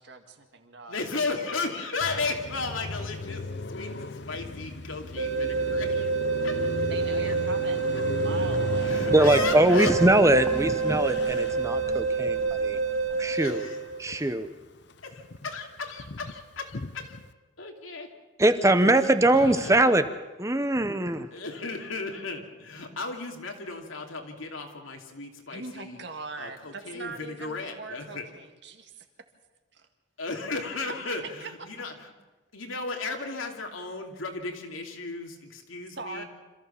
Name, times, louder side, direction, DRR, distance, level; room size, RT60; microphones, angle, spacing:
voice 1, 0.0-1.0 6.9-9.1 25.5-29.1 29.7-29.9 30.7-31.1 31.4-31.7 36.0-36.2, right 3 dB, 60° right, 6 dB, 2.0 m, -41 dB
voice 2, 0.9-6.1 6.4-6.7 7.0-7.3 8.8-9.9 13.3-13.8 14.1-14.3 15.0-17.2 17.6-18.1 18.8-19.8 21.3-26.0 26.4-28.2 30.2-32.1 32.5-36.2, left 3 dB, 90° left, 2 dB, 2.8 m, -35 dB
Car passing by, 2.0-14.5 14.8-17.3, left 2 dB, 60° left, 0.8 m, -37 dB
sound 1, 5.2-14.1, right 4 dB, 85° right, 2.6 m, -28 dB
sound 2, 8.3-13.3, equal, 15° left, 2.0 m, -40 dB
voice 3, 9.1-12.8 13.2-13.6 14.0-14.5 18.4-20.0 20.4-21.3, right 1 dB, 15° right, 10 dB, 0.8 m, -22 dB
26.5 x 14.5 x 7.1 m, 1.2 s
head